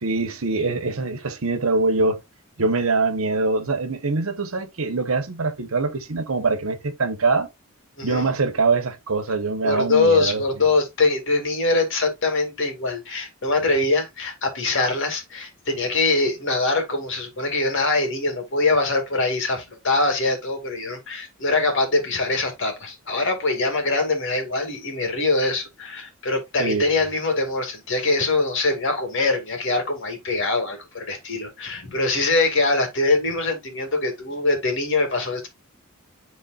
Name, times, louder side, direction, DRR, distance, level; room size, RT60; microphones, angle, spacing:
voice 1, 0.0-2.2 2.6-7.5 8.0-10.4 26.6-26.8, right 3 dB, 75° right, 1.1 m, -23 dB
voice 2, 8.0-8.3 9.6-35.5, left 3 dB, 60° left, 2.2 m, -23 dB
10.5 x 3.8 x 2.4 m
head